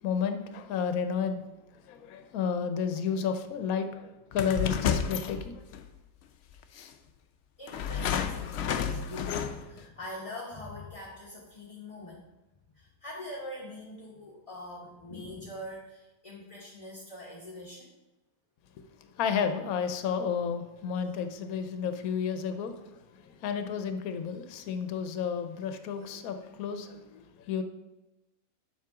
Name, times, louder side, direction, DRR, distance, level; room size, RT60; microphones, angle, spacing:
voice 1, 0.0-1.4 1.9-5.7 19.1-22.8 23.1-27.6, left 6 dB, 80° left, 8 dB, 1.1 m, -32 dB
sound 1, 4.3-5.9 6.8-6.9 7.7-9.8, left 7 dB, 65° left, 0.7 m, -31 dB
voice 2, 7.6-12.2 12.7-17.9, left 1 dB, 25° left, -2 dB, 0.9 m, -43 dB
7.4 x 6.1 x 3.6 m, 0.99 s
omnidirectional pair, 1.5 m